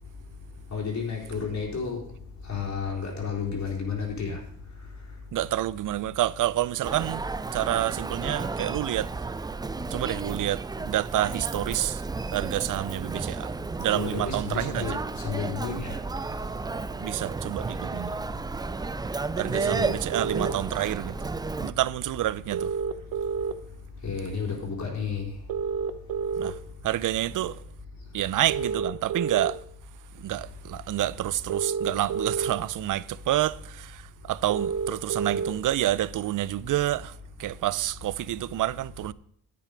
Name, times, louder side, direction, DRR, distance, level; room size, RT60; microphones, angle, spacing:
voice 1, 0.7-2.0 2.5-4.4 13.9-16.0 24.0-25.3, left 5 dB, 55° left, 4.2 m, -31 dB
voice 2, 5.3-7.2 7.5-9.1 9.9-12.0 12.3-13.5 13.8-15.0 17.0-18.2 19.4-21.1 21.6-22.7 26.4-26.6 26.8-27.6 28.1-29.6 30.2-34.0 34.3-37.1 37.4-39.1, right 14 dB, 65° right, 0.5 m, -28 dB
Human voice, 6.8-21.7, right 3 dB, 10° right, 0.3 m, -33 dB
sound 1, 19.6-20.5 22.5-23.5 25.5-26.5 28.5-29.5 31.5-32.5 34.5-35.5, right 6 dB, 90° right, 0.9 m, -29 dB
10.5 x 8.7 x 5.1 m
cardioid pair, 90°, 34 cm